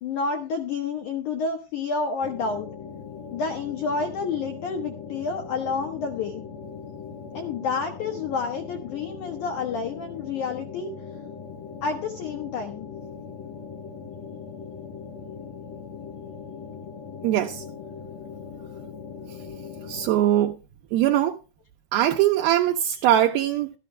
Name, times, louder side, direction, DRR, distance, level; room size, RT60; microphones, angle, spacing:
voice 1, 0.0-2.7 3.3-6.4 7.3-10.9 11.8-12.9, left 4 dB, 75° left, 1.8 m, -29 dB
sound 1, 2.2-20.2, left 6 dB, 90° left, 1.4 m, -40 dB
voice 2, 17.2-17.6 19.9-20.5 20.9-21.4 21.9-23.7, right 12 dB, 75° right, 2.3 m, -21 dB
13.5 x 13.0 x 3.3 m
omnidirectional pair, 5.3 m